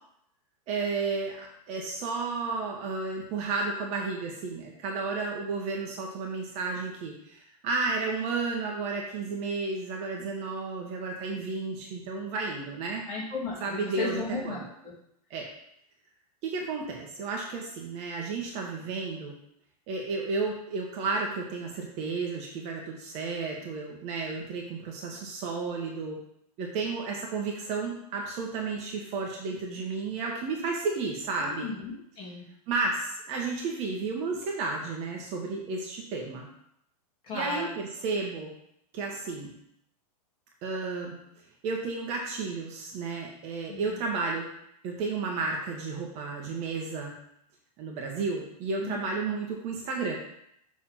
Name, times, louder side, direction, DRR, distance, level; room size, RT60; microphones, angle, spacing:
voice 1, 0.7-13.0 13.6-14.7 15.3-15.5 16.4-19.3 19.9-26.2 26.6-31.7 32.7-36.5 37.3-38.5 38.9-39.5 40.6-41.1 41.6-44.5 44.8-47.1 47.8-50.2, right 4 dB, 35° right, 0 dB, 1.3 m, -32 dB
voice 2, 13.1-14.9 31.4-32.5 37.2-37.7 43.7-43.9 48.8-49.0, left 4 dB, 25° left, -5 dB, 2.5 m, -35 dB
6.9 x 3.6 x 5.8 m, 0.73 s
supercardioid pair, 150°, 20 cm